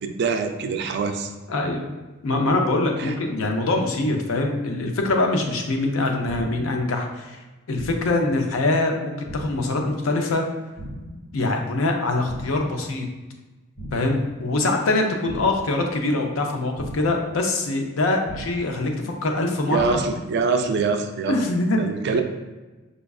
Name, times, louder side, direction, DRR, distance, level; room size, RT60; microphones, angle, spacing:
voice 1, 0.0-1.3 3.0-3.1 19.7-21.4 21.8-22.2, right 4 dB, 55° right, 6 dB, 0.3 m, -24 dB
voice 2, 1.5-1.9 2.2-7.4 7.7-10.4 11.3-13.1 13.9-20.0 21.3-21.8, left 2 dB, 90° left, 3 dB, 0.5 m, -23 dB
sound 1, 6.3-6.7 7.8-8.2 9.3-9.7 10.8-11.2 12.3-12.7 13.8-14.2 15.3-15.7 16.8-17.2 18.3-18.7 19.8-20.2, right 1 dB, 30° left, 1.4 m, -36 dB
5.1 x 2.3 x 2.3 m, 1.2 s
head